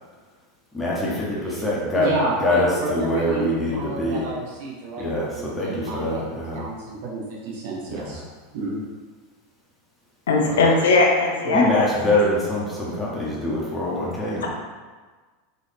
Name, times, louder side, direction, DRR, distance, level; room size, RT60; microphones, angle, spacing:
voice 1, 0.7-2.1 2.4-4.3 5.0-6.7 7.9-8.2 10.4-10.6 11.5-14.5, left 1 dB, 10° left, -6 dB, 1.4 m, -24 dB
voice 2, 1.9-6.2 6.5-8.2 8.5-8.8 11.4-11.6, right 2 dB, 60° right, -4 dB, 1.0 m, -30 dB
voice 3, 10.3-11.9, left 3 dB, 70° left, 0 dB, 0.8 m, -19 dB
3.9 x 3.8 x 3.5 m, 1.4 s
hypercardioid pair, 85°, 0 cm